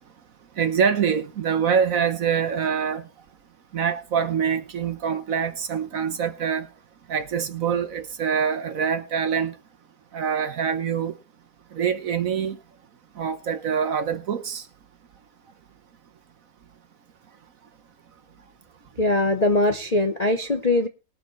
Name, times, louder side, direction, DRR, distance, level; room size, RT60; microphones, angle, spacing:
voice 1, 0.6-3.0 3.7-6.7 7.1-9.5 10.1-11.1 11.7-12.6 13.2-14.6, right 7 dB, 55° right, 1.3 m, -25 dB
voice 2, 19.0-20.9, left 2 dB, 35° left, 0.6 m, -21 dB
20.5 x 7.0 x 4.1 m
omnidirectional pair, 2.0 m